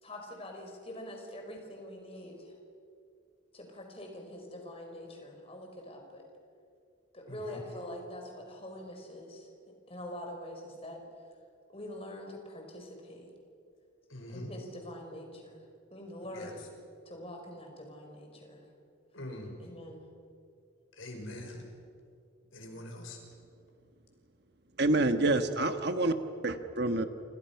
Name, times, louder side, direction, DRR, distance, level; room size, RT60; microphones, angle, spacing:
voice 1, 0.0-2.5 3.5-6.3 7.1-9.5 9.9-11.0 11.7-13.3 14.3-15.6 15.9-16.6 17.0-18.7 19.6-20.0, left 1 dB, 30° left, 2 dB, 4.8 m, -44 dB
voice 2, 7.3-7.6 14.1-14.5 16.3-16.5 19.1-19.6 21.0-21.6 22.5-23.2, left 1 dB, 75° left, 3 dB, 5.5 m, -43 dB
voice 3, 24.8-26.1 26.4-27.1, right 2 dB, 55° right, 8 dB, 1.4 m, -27 dB
28.5 x 27.5 x 5.9 m, 2.4 s
head